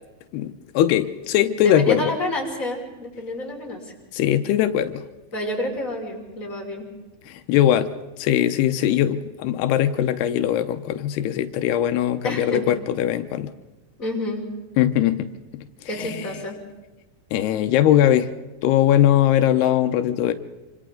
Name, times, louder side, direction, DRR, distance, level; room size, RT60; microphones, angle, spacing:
voice 1, 0.3-2.0 4.1-5.0 7.3-13.5 14.8-15.3 16.0-16.2 17.3-18.3 18.6-20.3, left 11 dB, 85° left, 9 dB, 2.9 m, -20 dB
voice 2, 1.6-3.9 5.3-6.9 12.2-12.7 14.0-14.5 15.9-16.6, left 1 dB, 20° left, -2 dB, 5.7 m, -29 dB
27.0 x 26.5 x 3.8 m, 1.1 s
omnidirectional pair, 4.5 m